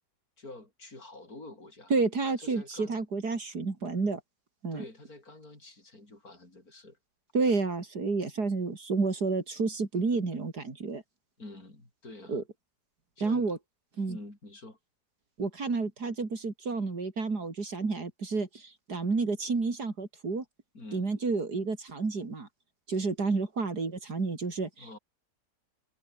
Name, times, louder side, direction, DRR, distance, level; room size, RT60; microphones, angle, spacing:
voice 1, 0.4-1.9 2.4-3.0 4.7-7.0 11.4-12.4 13.2-13.4 14.1-14.8 20.7-21.1 24.8-25.0, left 2 dB, 60° left, 7.3 m, -47 dB
voice 2, 1.9-4.2 4.6-4.8 7.3-11.0 12.3-12.4 13.2-13.6 14.0-14.2 15.4-20.4 20.9-22.5 22.9-25.0, right 4 dB, 75° right, 3.9 m, -30 dB
omnidirectional pair, 1.7 m